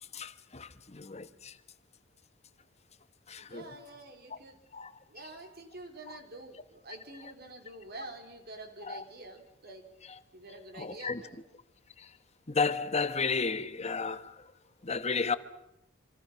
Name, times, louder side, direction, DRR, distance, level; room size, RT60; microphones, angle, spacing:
voice 1, 0.1-1.6 3.3-3.7 4.7-4.9 8.8-9.0 10.8-11.2 12.0-12.1 12.5-14.4 14.8-15.4, left 4 dB, 35° left, 1.1 m, -33 dB
voice 2, 3.4-4.6 5.1-9.8 10.3-11.4, right 2 dB, 55° right, 3.9 m, -47 dB
27.0 x 26.5 x 5.8 m
head